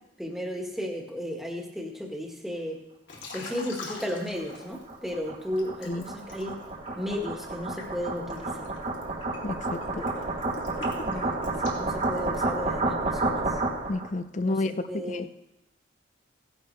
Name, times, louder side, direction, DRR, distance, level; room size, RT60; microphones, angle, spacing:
voice 1, 0.2-2.8 3.3-6.6 6.9-8.7 9.9-10.1 10.7-10.8 11.0-13.6 14.5-15.3, left 1 dB, ahead, 1 dB, 1.6 m, -34 dB
Liquid, 3.1-5.1 5.6-12.6, left 3 dB, 90° left, 3.1 m, -43 dB
sound 1, 4.1-14.1, right 2 dB, 40° right, 1.3 m, -31 dB
voice 2, 9.4-10.1 13.9-15.3, left 2 dB, 40° left, 12 dB, 0.6 m, -31 dB
17.0 x 11.5 x 3.4 m, 0.87 s
head